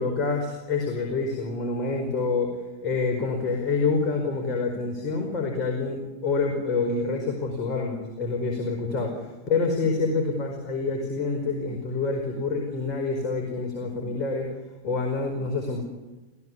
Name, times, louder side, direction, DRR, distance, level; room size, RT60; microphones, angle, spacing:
voice 1, 0.0-14.5 14.8-15.8, left 4 dB, 30° left, 3 dB, 4.8 m, -27 dB
26.5 x 16.0 x 9.8 m, 1.1 s
figure-of-eight pair, 90°, 0 cm